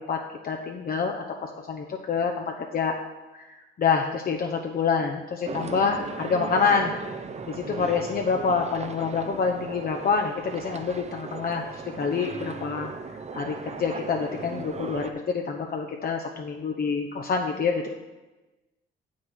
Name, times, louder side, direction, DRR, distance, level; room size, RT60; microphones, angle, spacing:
voice 1, 0.0-2.9 3.3-6.9 7.5-12.9 13.3-17.9, left 5 dB, 50° left, 2 dB, 0.9 m, -27 dB
sound 1, 5.5-15.1, right 4 dB, 35° right, 0.7 m, -37 dB
7.3 x 6.4 x 6.2 m, 1.1 s
cardioid pair, 90°, 20 cm